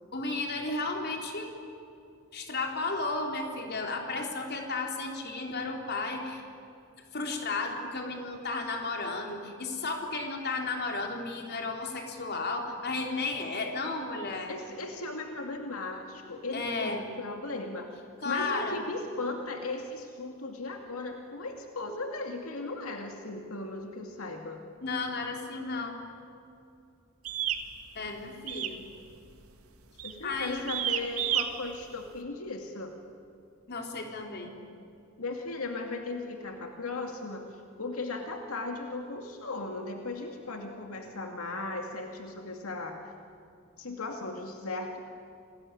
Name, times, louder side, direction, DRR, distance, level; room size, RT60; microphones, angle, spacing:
voice 1, 0.1-1.6 2.3-6.4 7.1-14.5 16.5-17.0 18.2-18.8 24.8-26.0 27.9-28.9 30.2-30.7 33.7-34.5, left 3 dB, 50° left, 2 dB, 3.7 m, -33 dB
voice 2, 14.5-17.9 18.2-24.6 30.0-33.0 35.2-43.0 43.8-45.0, left 2 dB, 85° left, 3 dB, 2.3 m, -37 dB
sound 1, 27.2-27.6 28.5-28.8 29.1-29.4 30.0-30.2 30.7-31.5, right 11 dB, 90° right, 1.9 m, -30 dB
28.0 x 21.0 x 9.9 m, 2.6 s
head